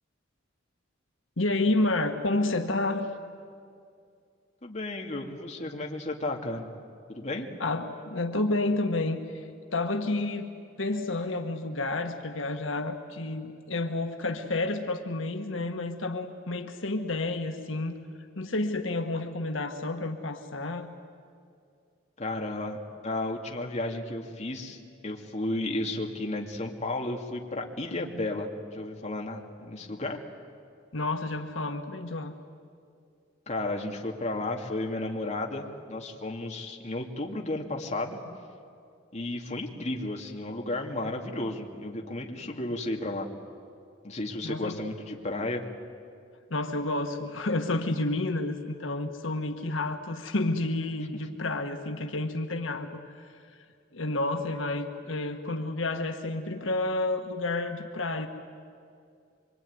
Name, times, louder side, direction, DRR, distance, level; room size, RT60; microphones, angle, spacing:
voice 1, 1.4-3.1 7.6-9.4 9.7-10.5 10.8-17.9 18.3-20.9 30.9-32.3 44.4-44.8 46.5-52.9 53.2-53.3 53.9-58.3, left 2 dB, 85° left, 5 dB, 1.5 m, -30 dB
voice 2, 4.6-6.7 7.1-7.5 22.2-30.2 33.5-38.2 39.1-43.3 44.0-45.6, left 2 dB, 35° left, 1 dB, 2.5 m, -33 dB
25.0 x 24.0 x 9.6 m, 2.3 s
head